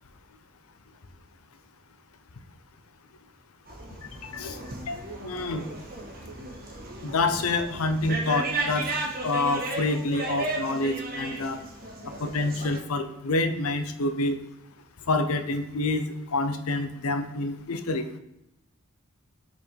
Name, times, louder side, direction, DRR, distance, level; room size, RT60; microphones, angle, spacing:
sound 1, 3.7-12.8, right 2 dB, 45° right, 1.3 m, -35 dB
voice 1, 4.9-5.6 7.0-8.9 9.2-11.6 12.2-14.4 15.1-18.1, left 2 dB, 75° left, 9 dB, 0.7 m, -27 dB
5.7 x 4.5 x 4.5 m, 0.86 s
head